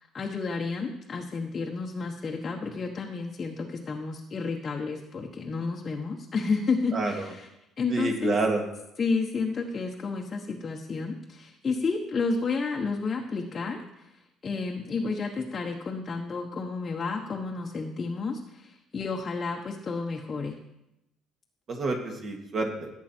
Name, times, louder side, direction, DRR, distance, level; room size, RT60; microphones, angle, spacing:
voice 1, 0.1-7.5 7.8-8.4 9.0-14.1 14.4-20.6, left 4 dB, 25° left, -1 dB, 1.1 m, -31 dB
voice 2, 6.9-7.3 7.9-8.6 21.7-22.9, right 3 dB, 35° right, 2 dB, 2.1 m, -28 dB
16.5 x 8.3 x 4.5 m, 0.87 s
cardioid pair, 145°, 0 cm